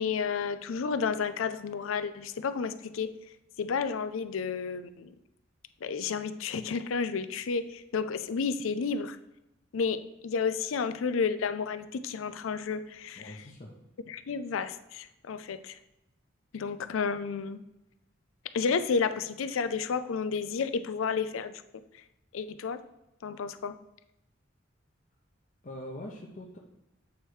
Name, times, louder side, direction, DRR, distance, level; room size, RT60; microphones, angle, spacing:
voice 1, 0.0-3.1 3.6-5.1 5.8-9.2 9.7-13.4 14.1-15.8 16.5-17.6 18.5-21.6 21.9-22.0 22.3-22.8 23.2-23.8, left 5 dB, 85° left, 12 dB, 0.4 m, -31 dB
voice 2, 13.2-13.7 25.6-26.6, left 1 dB, 40° left, -2 dB, 0.7 m, -43 dB
8.0 x 3.2 x 4.6 m, 0.89 s
head